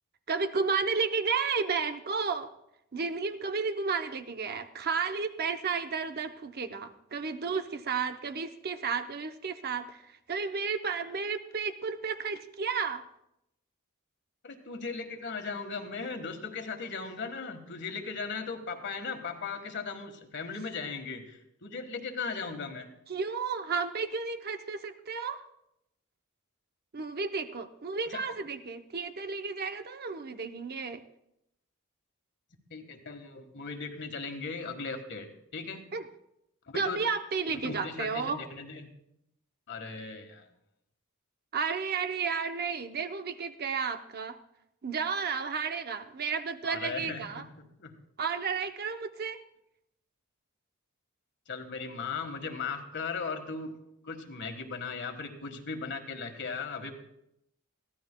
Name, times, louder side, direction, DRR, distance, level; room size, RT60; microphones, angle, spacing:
voice 1, 0.3-2.5 2.9-13.0 23.1-25.4 26.9-31.0 35.9-36.0 36.7-38.4 41.5-44.4 44.8-47.4 48.2-49.4, right 5 dB, 50° right, 8 dB, 0.7 m, -32 dB
voice 2, 14.4-22.9 28.1-28.2 32.7-35.9 36.7-37.0 37.5-38.9 39.7-40.5 46.6-47.9 51.5-53.7 54.0-56.9, left 4 dB, 55° left, 6 dB, 1.5 m, -38 dB
22.5 x 15.5 x 2.2 m, 0.80 s
head